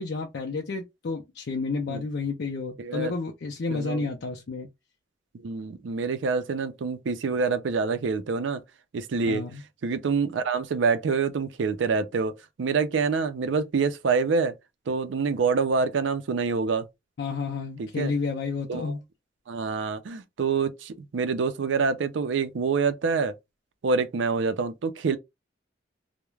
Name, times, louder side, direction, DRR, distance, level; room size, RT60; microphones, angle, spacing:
voice 1, 0.0-4.7 9.2-9.6 17.2-19.0, left 4 dB, 60° left, 0.4 m, -31 dB
voice 2, 2.8-3.1 3.7-4.1 5.3-8.6 8.9-9.4 9.8-14.5 14.9-16.9 17.8-18.1 18.7-18.9 19.5-23.3 23.8-25.2, right 5 dB, 75° right, 0.4 m, -26 dB
2.3 x 2.1 x 3.1 m
head